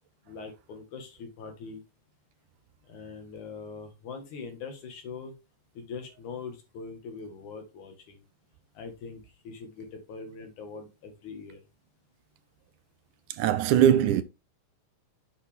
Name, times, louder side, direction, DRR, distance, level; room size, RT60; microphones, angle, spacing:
voice 1, 0.3-1.8 2.9-5.3 5.7-8.2 8.7-11.6, left 5 dB, 70° left, 3.2 m, -42 dB
voice 2, 13.4-14.2, right 10 dB, 80° right, 2.2 m, -21 dB
7.8 x 5.9 x 3.5 m
omnidirectional pair, 3.7 m